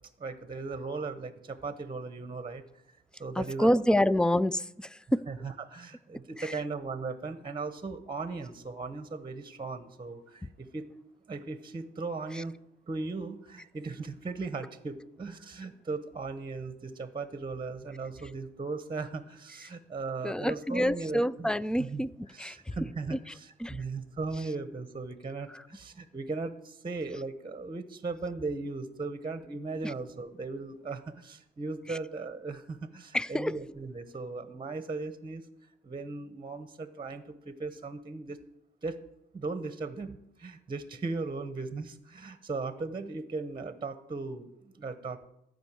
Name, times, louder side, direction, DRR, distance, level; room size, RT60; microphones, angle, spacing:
voice 1, 0.2-2.6 3.2-3.8 5.3-10.9 11.3-12.5 12.9-21.5 21.8-22.0 22.3-35.4 35.8-38.4 38.8-39.0 39.3-45.3, right 3 dB, 25° right, 11 dB, 1.0 m, -37 dB
voice 2, 3.4-5.3 6.4-6.6 12.3-12.4 20.2-22.1 22.4-22.7 23.1-23.2 23.6-23.8 25.5-25.6 31.9-32.0 33.1-33.6, equal, 5° left, 19 dB, 0.4 m, -28 dB
14.0 x 5.4 x 8.8 m, 0.81 s
cardioid pair, 90°, 20 cm